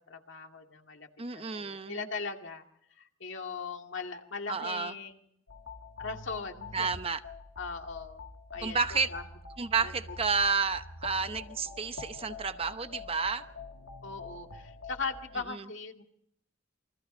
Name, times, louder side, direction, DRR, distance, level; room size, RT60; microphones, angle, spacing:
voice 1, 0.1-1.1 1.3-2.6 3.0-5.2 6.0-6.9 7.6-8.2 8.5-8.8 9.1-9.2 9.8-9.9 10.4-10.5 14.0-16.0, left 4 dB, 65° left, 4 dB, 2.3 m, -39 dB
voice 2, 1.2-2.1 4.5-4.9 6.7-7.2 8.6-9.1 9.6-13.4 15.5-15.7, right 5 dB, 30° right, 10 dB, 0.8 m, -31 dB
sound 1, 5.5-15.4, left 3 dB, 90° left, 2.2 m, -46 dB
28.0 x 23.5 x 4.4 m, 0.75 s
head